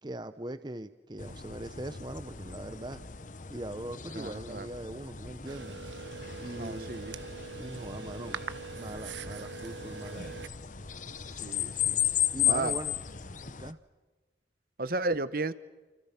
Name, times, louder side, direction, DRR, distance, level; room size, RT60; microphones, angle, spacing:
voice 1, 0.0-3.0 3.5-5.7 6.4-7.0 7.6-8.4 8.7-10.5 12.3-13.0 13.4-13.8, right 1 dB, 25° right, 11 dB, 0.8 m, -41 dB
sound 1, 1.2-13.7, left 10 dB, 45° left, 0.9 m, -35 dB
voice 2, 4.1-4.7 6.6-7.1 11.4-12.0 12.5-12.7 14.8-15.5, right 2 dB, 50° right, 14 dB, 1.0 m, -33 dB
sound 2, 5.5-10.5, right 5 dB, 80° right, 1.1 m, -42 dB
29.5 x 28.5 x 5.8 m, 1.2 s
head